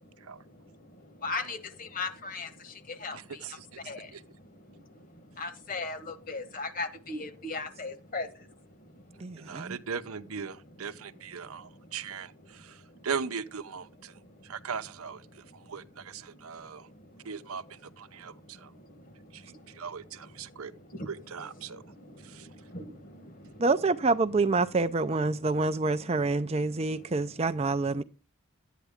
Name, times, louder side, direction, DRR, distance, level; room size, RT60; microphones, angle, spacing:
voice 1, 1.2-2.5 3.0-3.2 3.9-4.1 5.4-8.3 22.7-22.8, left 3 dB, 40° left, 1.2 m, -36 dB
voice 2, 3.1-4.2 9.4-16.9 17.2-18.7 19.3-20.7 21.1-21.8 22.2-22.5, right 6 dB, 90° right, 0.7 m, -39 dB
voice 3, 9.2-9.8 23.6-28.0, right 3 dB, 30° right, 0.4 m, -27 dB
11.0 x 9.2 x 3.6 m
head